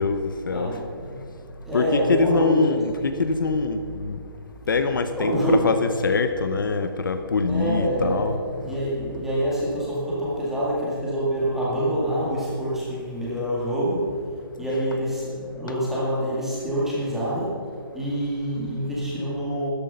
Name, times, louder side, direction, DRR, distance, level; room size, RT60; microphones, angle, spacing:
voice 1, 0.0-0.7 1.7-4.2 4.7-8.4, left 4 dB, 60° left, 8 dB, 1.0 m, -24 dB
voice 2, 0.5-1.3 1.6-2.6 5.2-5.7 7.4-19.7, right 1 dB, 5° right, -7 dB, 2.0 m, -26 dB
13.0 x 10.5 x 5.6 m, 2.2 s
hypercardioid pair, 175°, 12 cm